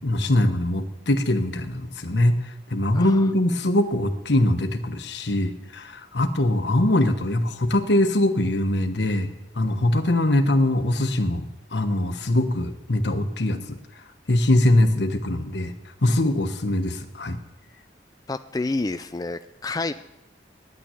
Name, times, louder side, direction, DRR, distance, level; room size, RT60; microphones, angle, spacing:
voice 1, 0.0-2.4 2.7-9.3 9.6-13.8 14.3-15.7 16.0-17.4, left 1 dB, 75° left, 8 dB, 1.2 m, -22 dB
voice 2, 2.9-3.3 18.3-19.9, left 3 dB, 20° left, 10 dB, 0.4 m, -29 dB
11.0 x 9.1 x 8.4 m, 0.90 s
head